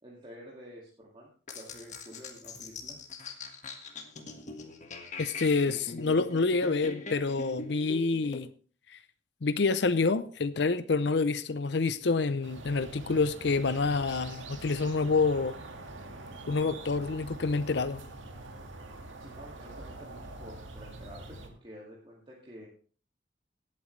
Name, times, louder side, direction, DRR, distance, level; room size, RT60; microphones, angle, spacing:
voice 1, 0.0-3.0 19.2-22.7, equal, 25° right, -4 dB, 2.2 m, -49 dB
sound 1, 1.5-8.4, left 3 dB, 40° left, 1.6 m, -43 dB
voice 2, 5.2-8.5 8.9-9.0 9.4-15.5 16.5-18.0, left 4 dB, 60° left, 12 dB, 0.6 m, -27 dB
sound 2, 12.4-21.5, right 2 dB, 90° right, 1.8 m, -45 dB
18.0 x 8.7 x 3.2 m, 0.41 s
head